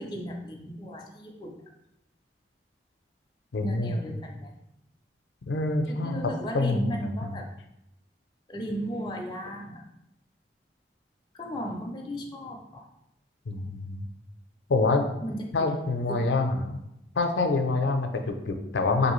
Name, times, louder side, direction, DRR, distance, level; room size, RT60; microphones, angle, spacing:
voice 1, 0.0-1.5 3.6-4.5 5.9-7.5 8.5-9.8 11.3-12.9 15.2-15.7 16.1-16.2, equal, 25° left, 0 dB, 0.4 m, -35 dB
voice 2, 3.5-4.0 5.5-7.0 13.5-14.1 14.7-15.1 15.5-16.8 17.2-19.1, left 3 dB, 90° left, 5 dB, 0.5 m, -26 dB
4.6 x 2.6 x 3.0 m, 0.85 s
head